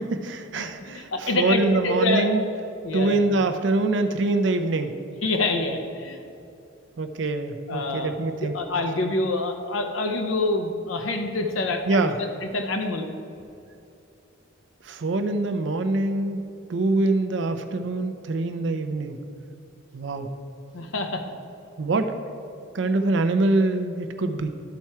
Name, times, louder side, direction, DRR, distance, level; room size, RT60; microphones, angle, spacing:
voice 1, 0.0-2.4 2.9-5.0 7.0-8.6 11.9-12.2 14.8-16.4 16.7-19.2 19.9-20.3 21.8-22.1 22.7-24.5, right 2 dB, 65° right, 7 dB, 0.5 m, -24 dB
voice 2, 0.6-2.3 2.8-3.2 5.2-6.2 7.7-8.2 8.4-12.0 12.5-13.1 20.7-21.2, left 2 dB, 85° left, 4 dB, 0.7 m, -26 dB
11.5 x 4.3 x 4.6 m, 2.7 s
head